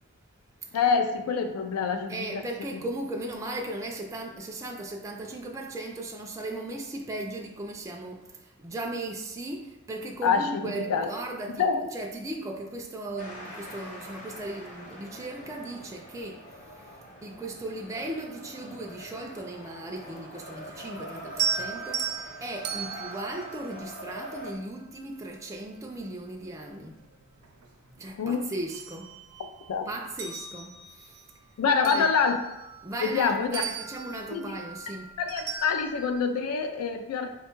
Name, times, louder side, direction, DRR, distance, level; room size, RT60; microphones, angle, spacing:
voice 1, 0.7-2.4 2.7-2.8 10.2-10.5 10.8-11.1 11.6-11.9 28.2-28.4 29.7-29.9 31.6-32.4 33.0-33.6 34.3-34.6 35.2-37.3, left 5 dB, 80° left, 6 dB, 0.4 m, -26 dB
voice 2, 2.1-11.6 11.9-16.4 17.2-27.0 28.0-29.1 29.9-31.3 31.8-32.1 32.8-35.1, right 1 dB, 15° right, 0 dB, 0.3 m, -37 dB
sound 1, 13.2-24.5, equal, 35° left, 0.7 m, -44 dB
sound 2, 21.3-24.6 26.2-26.3 26.9-28.1 28.4-29.7 30.0-33.2 33.5-36.2, right 7 dB, 85° right, 0.5 m, -36 dB
4.3 x 2.2 x 4.4 m, 0.96 s
head